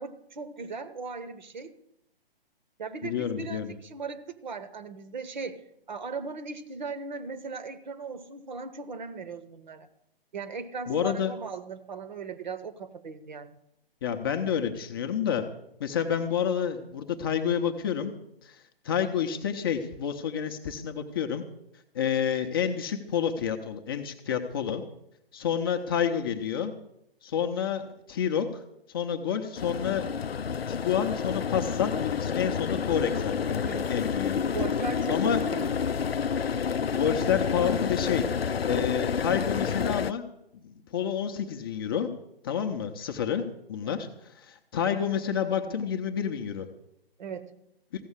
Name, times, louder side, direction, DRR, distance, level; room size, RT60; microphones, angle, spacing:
voice 1, 0.0-1.8 2.8-9.9 10.3-13.6 33.6-34.0 34.5-35.7 43.8-44.1 47.2-47.5, right 4 dB, 50° right, 12 dB, 1.0 m, -38 dB
voice 2, 3.0-3.7 10.9-11.3 14.0-15.5 15.8-18.1 18.4-21.4 21.9-24.8 25.3-26.7 27.2-28.6 28.9-30.1 30.7-34.5 35.1-35.4 36.9-38.2 38.7-40.2 40.5-42.1 42.4-44.1 44.3-46.7, left 8 dB, 25° left, 6 dB, 0.7 m, -29 dB
sound 1, 29.6-40.1, left 6 dB, 80° left, 0.5 m, -29 dB
15.0 x 7.0 x 8.2 m, 0.80 s
figure-of-eight pair, 135°, 30 cm